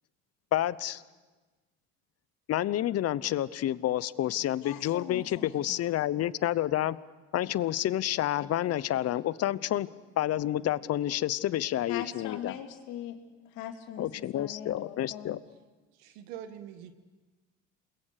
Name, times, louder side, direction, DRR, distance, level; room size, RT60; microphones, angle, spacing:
voice 1, 0.5-1.0 2.5-7.0 7.3-9.9 10.2-12.6 14.0-15.4, left 13 dB, 55° left, 18 dB, 0.9 m, -29 dB
voice 2, 4.6-5.8 11.9-13.2 13.4-15.4, left 10 dB, 75° left, 4 dB, 2.7 m, -41 dB
voice 3, 16.0-16.9, right 10 dB, 90° right, 9 dB, 1.8 m, -43 dB
28.0 x 21.5 x 6.7 m, 1.2 s
supercardioid pair, 80°, 30 cm